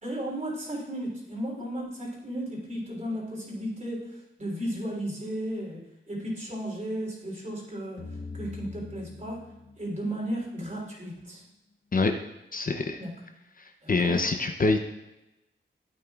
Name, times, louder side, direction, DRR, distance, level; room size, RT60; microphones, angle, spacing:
voice 1, 0.0-8.1 8.3-9.5 9.8-11.4 13.0-13.1 13.8-14.2, right 1 dB, 35° right, -2 dB, 3.4 m, -34 dB
sound 1, 8.0-10.9, left 3 dB, 65° left, 1.2 m, -43 dB
voice 2, 12.5-13.0 13.6-14.8, left 3 dB, 45° left, 5 dB, 0.7 m, -25 dB
13.0 x 8.6 x 2.4 m, 0.95 s
wide cardioid pair, 85°, 20 cm